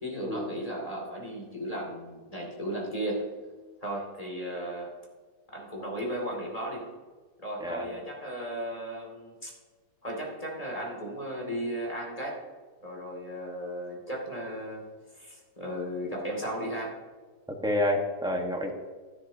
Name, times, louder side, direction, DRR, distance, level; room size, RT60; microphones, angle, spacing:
voice 1, 0.0-3.3 3.8-4.9 5.5-6.9 7.4-9.5 10.0-12.4 12.8-14.8 15.1-17.0, equal, 20° left, -2 dB, 2.3 m, -35 dB
voice 2, 17.6-18.7, left 1 dB, 5° right, 1 dB, 0.9 m, -28 dB
12.0 x 11.0 x 2.7 m, 1.4 s
omnidirectional pair, 2.0 m